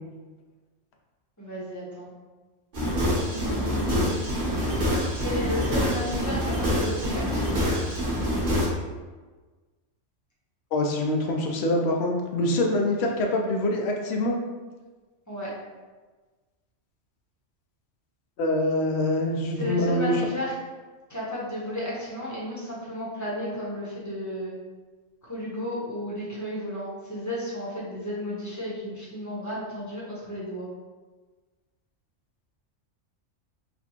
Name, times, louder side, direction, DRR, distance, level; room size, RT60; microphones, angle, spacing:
voice 1, 1.4-2.1 3.3-4.3 5.2-7.7 15.3-15.5 19.5-20.5 21.1-24.5 25.2-30.7, left 1 dB, 15° left, -7 dB, 0.8 m, -33 dB
sound 1, 2.7-8.7, equal, 45° right, 1.1 m, -26 dB
voice 2, 10.7-14.4 18.4-20.1, left 1 dB, 65° left, 1 dB, 0.8 m, -25 dB
4.2 x 2.2 x 2.8 m, 1.3 s
omnidirectional pair, 1.3 m